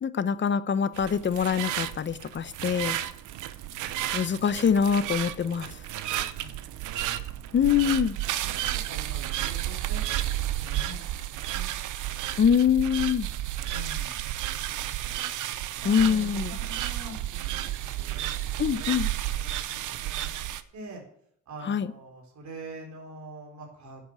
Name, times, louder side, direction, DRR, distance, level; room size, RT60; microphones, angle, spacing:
voice 1, 0.0-3.0 4.1-5.7 7.5-8.1 12.4-13.3 15.9-16.6 18.6-19.1 21.6-21.9, left 7 dB, 40° left, 0.9 m, -24 dB
sound 1, 0.9-20.6, right 13 dB, 85° right, 0.8 m, -32 dB
voice 2, 6.3-7.7 8.0-10.3 10.6-11.7 12.1-12.2 13.6-14.2 14.7-15.3 15.8-16.3 16.6-18.6 19.5-21.0 21.5-24.0, right 1 dB, 65° right, 4.1 m, -46 dB
10.0 x 8.0 x 7.8 m
cardioid pair, 90°, 30 cm